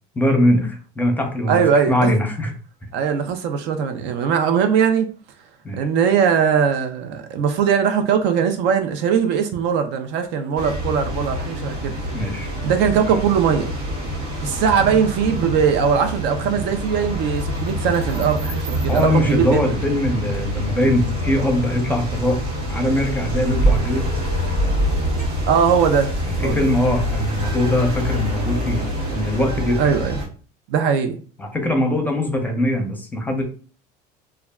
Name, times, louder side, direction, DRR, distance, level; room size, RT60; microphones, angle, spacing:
voice 1, 0.1-2.5 5.6-5.8 12.1-12.5 13.0-13.2 18.9-22.4 22.7-24.1 26.4-28.8 29.1-29.8 31.4-33.4, left 1 dB, 10° left, 0.7 m, -21 dB
voice 2, 1.5-2.1 2.9-5.1 5.8-11.9 12.6-13.7 14.4-19.8 25.5-26.1 26.4-26.6 29.8-30.1 30.7-31.2, right 7 dB, 65° right, 0.5 m, -20 dB
sound 1, 10.6-30.3, equal, 85° right, 1.2 m, -25 dB
2.3 x 2.1 x 3.5 m
supercardioid pair, 100°, 19 cm